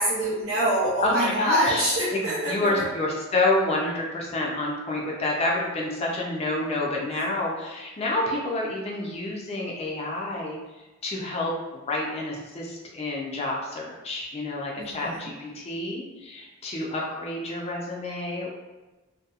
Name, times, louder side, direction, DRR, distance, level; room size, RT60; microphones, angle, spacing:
voice 1, 0.0-2.5 14.8-15.2, right 1 dB, 75° right, -8 dB, 0.6 m, -25 dB
voice 2, 1.0-10.6 11.0-18.5, left 2 dB, 30° left, -2 dB, 0.4 m, -28 dB
2.7 x 2.2 x 2.3 m, 1.1 s
head